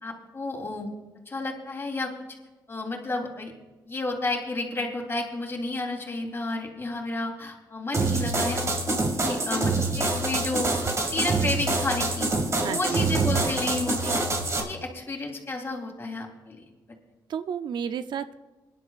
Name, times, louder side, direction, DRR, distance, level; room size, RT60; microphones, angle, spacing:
voice 1, 0.0-0.9 1.3-2.1 2.7-3.5 3.9-12.3 12.6-14.2 14.6-16.6, left 2 dB, 30° left, 1 dB, 3.2 m, -31 dB
sound 1, 7.9-14.6, right 3 dB, 40° right, 2.1 m, -26 dB
voice 2, 12.6-13.1 17.3-18.4, right 8 dB, 70° right, 11 dB, 0.5 m, -32 dB
24.0 x 11.5 x 2.4 m, 1.2 s
cardioid pair, 105°, 8 cm